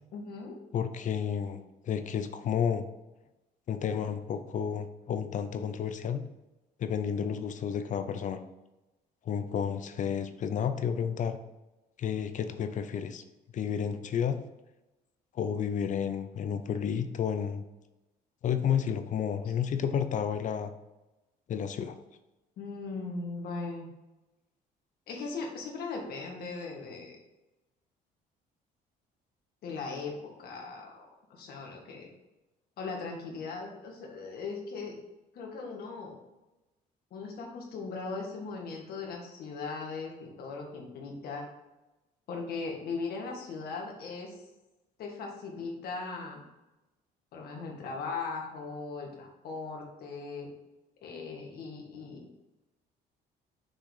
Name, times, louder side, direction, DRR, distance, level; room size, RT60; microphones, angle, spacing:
voice 1, 0.1-0.6 22.6-23.9 25.1-27.2 29.6-32.1 32.8-35.0 35.3-36.2 37.1-41.5 42.3-44.4 45.0-46.4 47.3-50.5 51.0-52.3, left 4 dB, 65° left, 0 dB, 1.8 m, -39 dB
voice 2, 0.7-2.8 3.7-6.2 6.8-8.4 9.2-11.4 12.0-13.2 13.5-14.4 15.3-17.6 18.4-20.7 21.5-22.0, left 8 dB, 50° left, 10 dB, 0.6 m, -31 dB
6.3 x 3.9 x 4.9 m, 1.0 s
cardioid pair, 110°, 17 cm